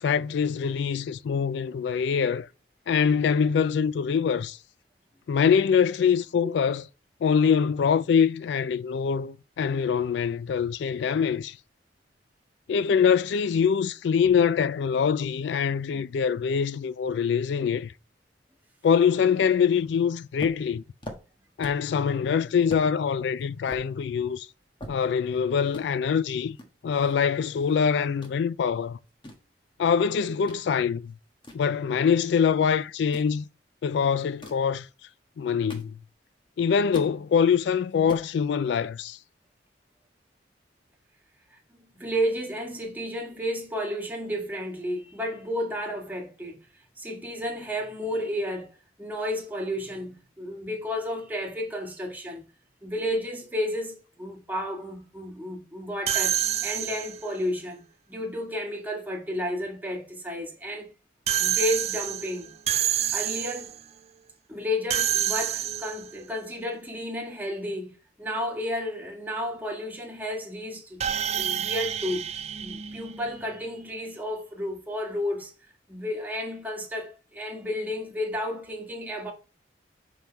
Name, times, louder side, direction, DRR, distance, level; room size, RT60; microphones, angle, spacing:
voice 1, 0.0-2.5 2.9-4.6 5.3-6.9 7.2-11.6 12.7-17.9 18.8-20.8 21.6-24.5 24.9-26.6 26.8-29.0 29.8-31.1 31.5-33.4 33.8-34.9 35.4-36.0 36.6-39.2, left 7 dB, 70° left, 0.3 m, -24 dB
sound 1, 20.4-21.9 22.3-22.4 22.7-22.9 23.4-25.4 25.7-25.9 26.6-27.8 28.0-28.4 28.9-30.6 31.0-32.3 33.0-33.4 34.2-34.7 35.3-36.3 36.6-37.2 37.6-37.7 37.9-38.3, left 1 dB, 25° left, 1.4 m, -44 dB
voice 2, 41.5-46.6 47.0-52.4 52.8-57.8 58.1-60.9 61.4-62.5 63.1-63.8 64.5-72.2 72.6-75.5 75.9-79.3, equal, 10° right, 1.7 m, -32 dB
sound 2, 56.1-57.3 61.3-63.8 64.9-66.2 71.0-73.5, right 10 dB, 35° right, 0.4 m, -28 dB
5.9 x 5.3 x 4.5 m
head